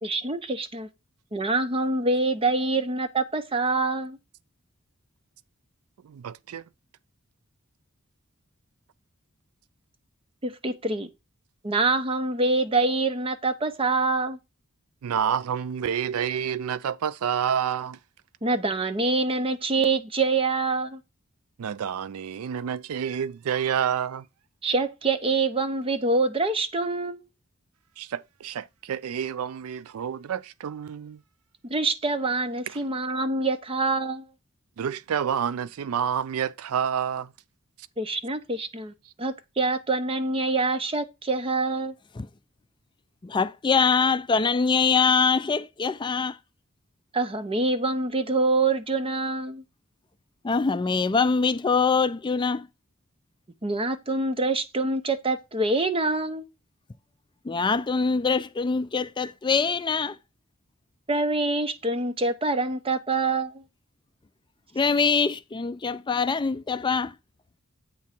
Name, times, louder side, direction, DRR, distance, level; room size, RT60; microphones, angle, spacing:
voice 1, 0.0-0.9 1.3-4.2 10.4-11.1 11.6-14.4 18.4-21.0 24.6-27.3 31.6-34.3 38.0-38.9 39.2-41.9 47.1-49.6 53.6-56.4 61.1-63.6, right 3 dB, 25° right, 0.9 m, -25 dB
voice 2, 6.0-6.6 15.0-18.0 21.6-24.3 28.0-31.2 32.7-32.8 34.8-37.3, right 8 dB, 85° right, 0.4 m, -29 dB
voice 3, 43.2-46.4 50.4-52.7 57.4-60.2 64.7-67.1, left 5 dB, 20° left, 0.4 m, -23 dB
8.5 x 3.6 x 5.9 m
head